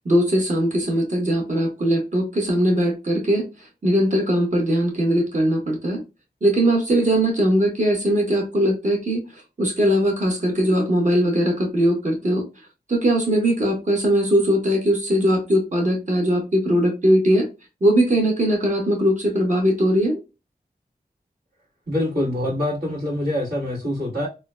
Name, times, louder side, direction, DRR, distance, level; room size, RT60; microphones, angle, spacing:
voice 1, 0.0-3.5 3.8-6.0 6.4-9.2 9.6-12.5 12.9-17.5 17.8-20.2, equal, 50° right, 1.2 m, -20 dB
voice 2, 21.9-24.3, left 1 dB, 75° right, 1.5 m, -25 dB
3.7 x 2.3 x 2.2 m
wide cardioid pair, 60°, 17 cm